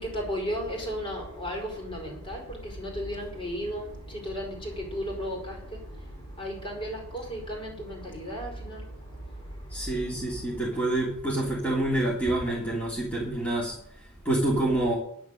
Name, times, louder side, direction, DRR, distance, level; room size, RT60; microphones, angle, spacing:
voice 1, 0.0-10.6, equal, 25° left, 4.8 m, -35 dB
voice 2, 9.7-13.8 14.2-15.0, right 1 dB, 5° left, 3.3 m, -27 dB
11.0 x 10.5 x 6.6 m
head